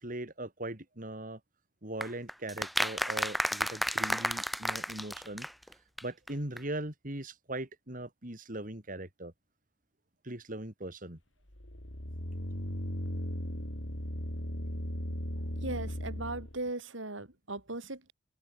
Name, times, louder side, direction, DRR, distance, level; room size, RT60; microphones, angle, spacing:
voice 1, 0.0-1.4 1.8-5.5 6.0-9.3 10.2-11.2 15.0-15.1, right 1 dB, 45° right, 3.5 m, -40 dB
sound 1, 2.0-6.0 6.3-6.4 6.6-6.7, equal, ahead, 1.1 m, -32 dB
sound 2, 11.5-16.6, equal, 75° left, 4.7 m, -37 dB
voice 2, 15.6-18.1, right 2 dB, 75° right, 5.0 m, -38 dB
open air
head